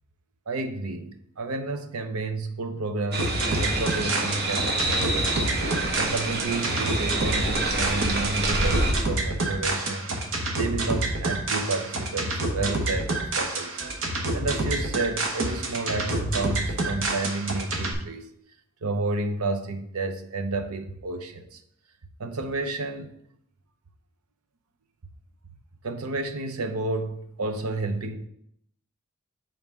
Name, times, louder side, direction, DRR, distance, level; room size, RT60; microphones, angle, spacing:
voice 1, 0.5-5.3 5.6-10.1 10.6-13.9 14.3-18.3 18.8-21.6 22.2-23.1 25.8-28.2, right 3 dB, 85° right, 0.7 m, -31 dB
sound 1, 3.1-8.9, right 2 dB, 50° right, 1.0 m, -27 dB
sound 2, 3.2-17.9, right 2 dB, 65° right, 1.1 m, -28 dB
5.5 x 3.9 x 6.0 m
head